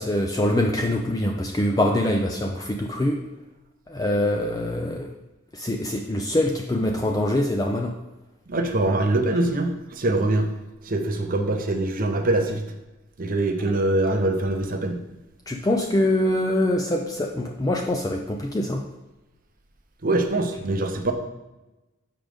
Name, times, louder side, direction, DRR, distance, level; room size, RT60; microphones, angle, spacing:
voice 1, 0.0-3.2 3.9-5.1 5.5-7.9 15.5-18.8, left 1 dB, 15° left, 2 dB, 0.4 m, -24 dB
voice 2, 8.5-10.5 10.8-12.6 13.2-15.0 20.0-21.1, right 2 dB, 40° right, 5 dB, 0.7 m, -23 dB
7.5 x 5.1 x 3.4 m, 1.0 s
head